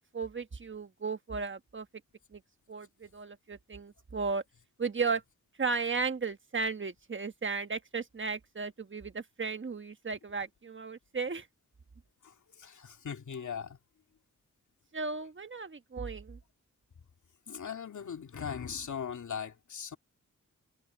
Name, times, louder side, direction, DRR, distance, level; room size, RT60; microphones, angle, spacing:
voice 1, 0.1-1.9 2.3-2.4 2.7-4.4 4.8-5.2 5.6-11.5 14.9-16.4, right 4 dB, 40° right, 1.3 m, -35 dB
voice 2, 12.2-13.8 17.5-20.0, left 7 dB, 75° left, 2.4 m, -39 dB
wide cardioid pair, 80°, 30 cm